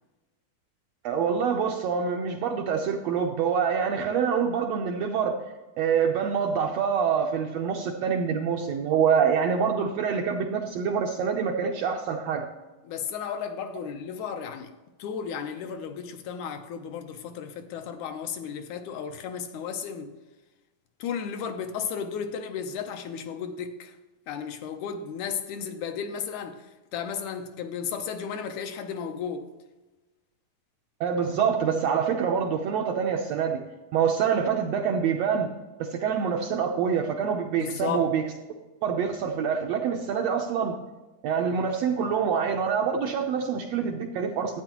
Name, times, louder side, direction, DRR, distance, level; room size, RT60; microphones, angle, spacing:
voice 1, 1.0-5.5 5.8-12.5 31.0-33.6 33.9-35.5 35.8-38.2 38.8-40.7 41.2-44.6, right 7 dB, 75° right, 1.6 m, -26 dB
voice 2, 12.8-14.7 15.0-20.1 21.0-23.9 24.3-26.7 26.9-29.5 37.6-38.1, left 7 dB, 75° left, 2.1 m, -34 dB
12.0 x 9.1 x 3.0 m
omnidirectional pair, 3.6 m